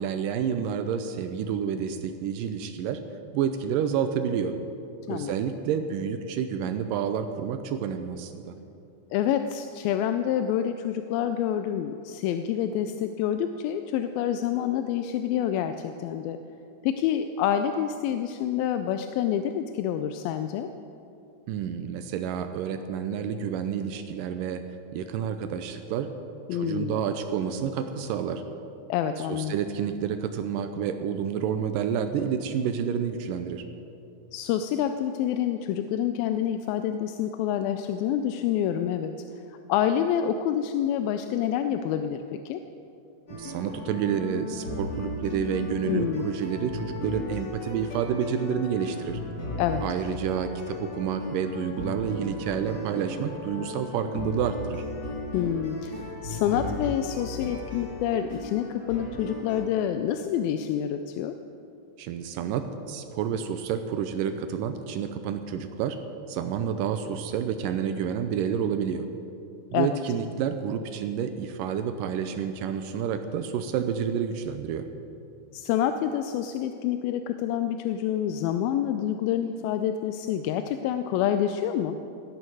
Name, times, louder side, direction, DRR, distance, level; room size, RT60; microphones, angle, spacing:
voice 1, 0.0-3.0 3.3-4.5 5.1-8.6 21.5-24.6 24.9-26.1 26.5-28.4 29.3-33.6 43.3-49.2 49.8-54.8 62.0-66.0 66.3-69.1 69.7-74.9, right 8 dB, 80° right, 8 dB, 2.0 m, -29 dB
voice 2, 9.1-16.4 16.8-20.7 26.5-27.0 28.9-29.6 34.3-39.1 39.5-42.6 45.9-46.3 49.6-49.8 55.3-61.4 69.7-69.9 75.5-82.0, left 10 dB, 80° left, 8 dB, 2.3 m, -27 dB
sound 1, 43.3-59.6, left 2 dB, 30° left, 2.7 m, -36 dB
17.0 x 13.5 x 4.8 m, 2.7 s
omnidirectional pair, 4.5 m